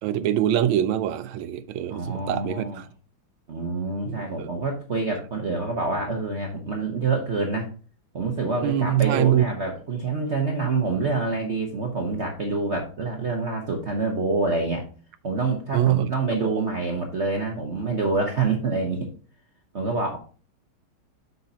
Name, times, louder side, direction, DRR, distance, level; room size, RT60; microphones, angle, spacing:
voice 1, 0.0-2.8 4.0-4.5 8.6-9.4 15.7-16.6, right 11 dB, 75° right, 1.4 m, -24 dB
voice 2, 1.9-2.8 3.5-7.7 8.1-14.8 15.2-19.1 19.7-20.2, right 3 dB, 45° right, 1.0 m, -26 dB
8.1 x 6.6 x 2.8 m
omnidirectional pair, 2.4 m